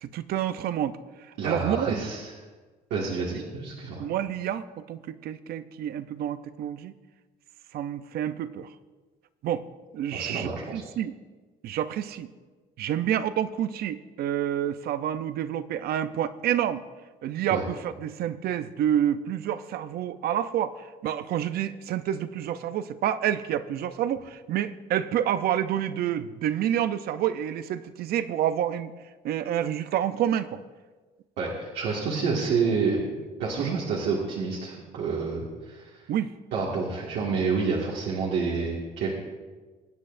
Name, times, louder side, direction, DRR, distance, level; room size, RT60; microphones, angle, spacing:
voice 1, 0.0-1.0 1.4-2.0 4.0-6.9 7.7-8.7 9.4-9.6 9.9-11.2 11.6-12.3 12.8-16.8 17.2-28.9 29.2-30.6 33.6-33.8 36.1-36.3, right 10 dB, 65° right, 12 dB, 0.6 m, -28 dB
voice 2, 1.4-2.3 2.9-4.0 10.1-10.8 17.5-17.6 31.4-33.0 33.4-36.0 36.5-39.1, right 4 dB, 85° right, -5 dB, 1.9 m, -28 dB
22.0 x 8.5 x 2.6 m, 1.3 s
cardioid pair, 110°, 17 cm